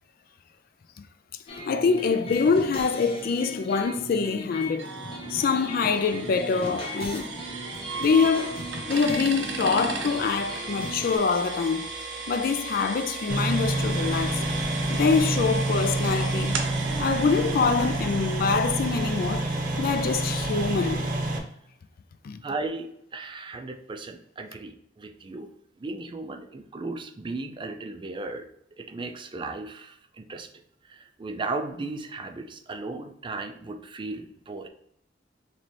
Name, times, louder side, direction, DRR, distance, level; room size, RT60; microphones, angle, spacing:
sound 1, 1.5-11.2, left 1 dB, 30° left, 0.8 m, -38 dB
voice 1, 1.7-4.9 5.3-7.4 8.0-8.6 8.9-11.9 12.3-14.4 14.9-16.6 17.0-19.5 19.8-21.1 22.2-22.4, left 5 dB, 55° left, 0.4 m, -25 dB
sound 2, 4.8-20.5, right 4 dB, 80° right, 0.7 m, -36 dB
sound 3, 13.3-21.4, right 2 dB, 50° right, 0.7 m, -28 dB
voice 2, 22.4-25.5 25.8-28.5 28.8-30.5 30.8-34.7, right 3 dB, 25° right, 0.4 m, -36 dB
3.9 x 3.2 x 3.1 m
head